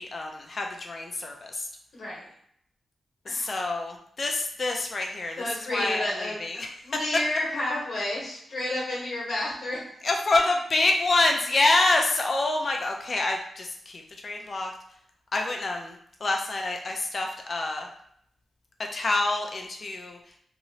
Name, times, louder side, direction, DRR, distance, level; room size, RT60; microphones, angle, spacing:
voice 1, 0.0-1.6 3.3-6.7 10.0-14.7 15.3-16.0 16.2-17.9 18.9-20.2, left 2 dB, 40° left, 2 dB, 0.5 m, -27 dB
voice 2, 1.9-2.3 3.2-3.6 5.4-9.8, left 1 dB, 65° left, -5 dB, 1.2 m, -31 dB
3.0 x 2.6 x 2.8 m, 0.68 s
wide cardioid pair, 120°, 0 cm